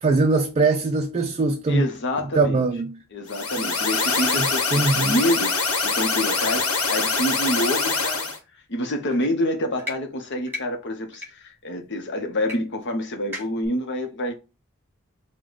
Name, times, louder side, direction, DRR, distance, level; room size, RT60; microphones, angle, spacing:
voice 1, 0.0-1.9 2.3-3.0 4.7-5.1, right 3 dB, 30° right, 0.4 m, -21 dB
voice 2, 1.7-2.7 3.1-5.6 5.8-8.3 8.7-14.3, left 1 dB, 55° left, 0.8 m, -27 dB
sound 1, 3.3-8.4, left 4 dB, 80° left, 1.0 m, -24 dB
sound 2, 9.1-9.3 9.8-10.0 10.5-10.6 11.1-11.3 12.5-12.6 12.8-12.9 13.3-13.7, left 2 dB, 10° right, 1.6 m, -34 dB
4.8 x 2.2 x 3.8 m
head